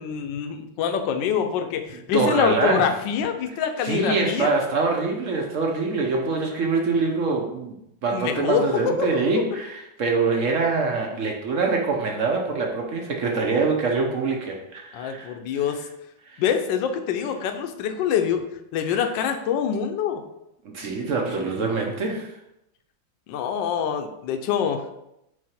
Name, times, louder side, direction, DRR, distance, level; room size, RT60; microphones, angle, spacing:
voice 1, 0.0-4.6 8.1-9.1 14.9-15.8 16.4-18.4 18.7-20.2 23.3-24.8, left 7 dB, 75° left, 7 dB, 1.3 m, -25 dB
voice 2, 2.1-3.0 3.8-15.8 16.3-16.4 18.8-18.9 20.6-22.3, right 4 dB, 60° right, 1 dB, 0.8 m, -25 dB
4.9 x 4.7 x 4.3 m, 0.84 s
omnidirectional pair, 2.2 m